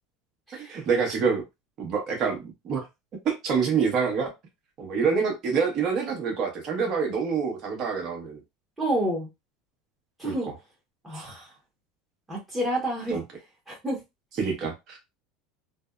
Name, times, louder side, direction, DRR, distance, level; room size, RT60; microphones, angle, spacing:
voice 1, 0.7-1.4 1.8-2.9 3.2-4.3 4.8-8.4 10.2-10.5 13.1-13.2 14.4-15.2, right 5 dB, 45° right, 1.0 m, -26 dB
voice 2, 8.8-9.3 10.2-10.5 11.0-11.5 12.3-13.2 13.7-14.0, right 1 dB, 15° right, 1.0 m, -29 dB
2.6 x 2.0 x 2.4 m
supercardioid pair, 110°, 0 cm